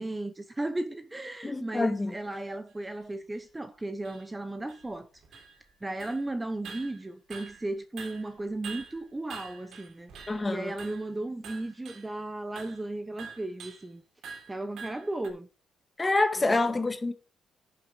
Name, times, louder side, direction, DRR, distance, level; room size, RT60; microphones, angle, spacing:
voice 1, 0.0-5.4 5.8-14.0 14.5-15.5 16.5-16.8, right 2 dB, 15° right, 0.9 m, -35 dB
voice 2, 1.4-2.1 10.3-10.7 16.0-17.1, left 2 dB, 20° left, 1.7 m, -27 dB
sound 1, 1.8-1.9 2.3-2.4 3.0-3.1 3.3-3.4 4.0-4.3 4.7-5.7 6.0-6.3 6.6-7.7 8.0-10.5 10.8-11.1 11.4-12.1 12.6-12.8 13.2-13.9 14.2-15.3, right 5 dB, 70° right, 3.3 m, -46 dB
11.0 x 7.0 x 4.9 m
cardioid pair, 90°, 0 cm